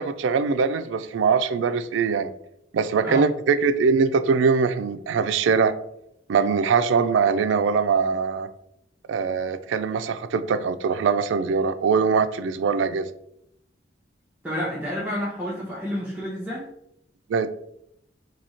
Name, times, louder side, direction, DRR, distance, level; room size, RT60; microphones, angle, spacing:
voice 1, 0.0-2.3 2.7-5.7 6.3-8.5 9.1-13.1 17.3-17.5, right 5 dB, 75° right, 12 dB, 0.3 m, -22 dB
voice 2, 14.4-16.7, equal, 5° right, -7 dB, 0.6 m, -30 dB
2.9 x 2.7 x 4.1 m, 0.77 s
head